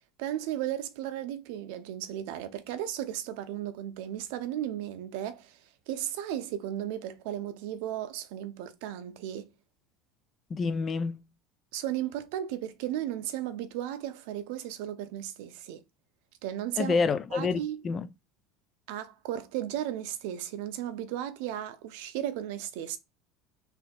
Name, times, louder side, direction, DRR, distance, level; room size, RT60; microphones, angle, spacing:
voice 1, 0.2-5.6 5.9-9.5 11.7-15.8 16.4-16.9 17.3-17.8 18.9-23.0, right 11 dB, 75° right, 0.7 m, -35 dB
voice 2, 10.5-11.2 16.8-18.1, left 4 dB, 30° left, 0.5 m, -28 dB
3.5 x 2.8 x 4.3 m
supercardioid pair, 135°, 0 cm